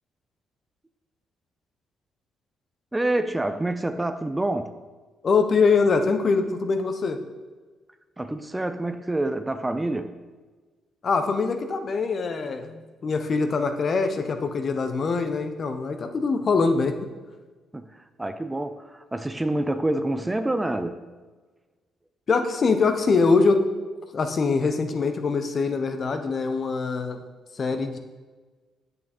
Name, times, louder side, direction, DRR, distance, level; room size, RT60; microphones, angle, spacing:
voice 1, 2.9-4.7 8.2-10.2 17.7-21.0, right 1 dB, 15° right, 9 dB, 0.5 m, -27 dB
voice 2, 5.2-7.2 11.0-17.0 22.3-23.6 24.1-27.2 27.5-28.0, left 4 dB, 45° left, 7 dB, 0.8 m, -23 dB
8.3 x 6.8 x 4.3 m, 1.3 s
cardioid pair, 90°, 0 cm